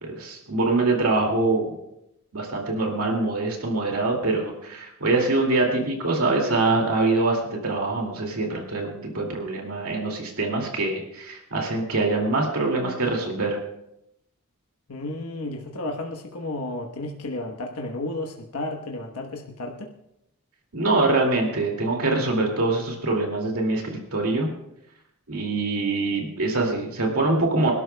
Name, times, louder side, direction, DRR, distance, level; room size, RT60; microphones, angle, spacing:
voice 1, 0.0-1.7 2.3-13.6 20.7-24.5 25.3-27.7, right 2 dB, 75° right, 0 dB, 2.4 m, -24 dB
voice 2, 14.9-19.9, left 2 dB, 80° left, 1 dB, 1.2 m, -32 dB
26.5 x 12.5 x 2.3 m, 0.83 s
head